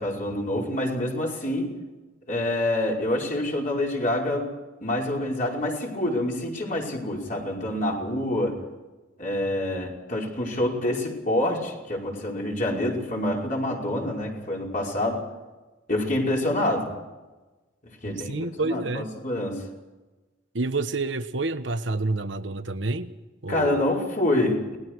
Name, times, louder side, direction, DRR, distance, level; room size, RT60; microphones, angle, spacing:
voice 1, 0.0-1.7 2.3-4.5 4.8-8.6 9.2-15.2 15.9-16.9 18.0-19.6 23.5-24.8, left 1 dB, 40° left, 5.4 m, -27 dB
voice 2, 18.0-19.1 20.5-23.1 23.4-23.8, right 3 dB, 65° right, 1.3 m, -28 dB
29.5 x 20.5 x 4.8 m
head